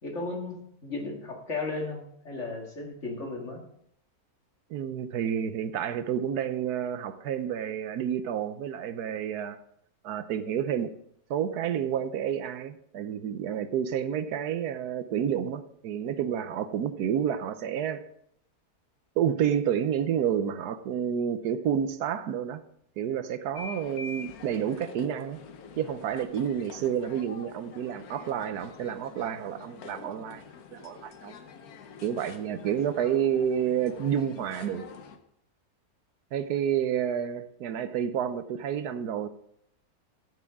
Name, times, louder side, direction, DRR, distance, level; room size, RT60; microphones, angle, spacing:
voice 1, 0.0-3.6, left 3 dB, 50° left, 1 dB, 2.2 m, -35 dB
voice 2, 4.7-9.6 10.0-10.9 11.3-18.0 19.2-22.6 23.0-25.4 25.8-30.4 30.7-31.3 32.0-34.8 36.3-39.3, right 9 dB, 85° right, 12 dB, 1.3 m, -29 dB
sound 1, 23.5-35.2, left 5 dB, 75° left, 1.4 m, -46 dB
15.0 x 7.6 x 3.6 m, 0.70 s
omnidirectional pair, 1.6 m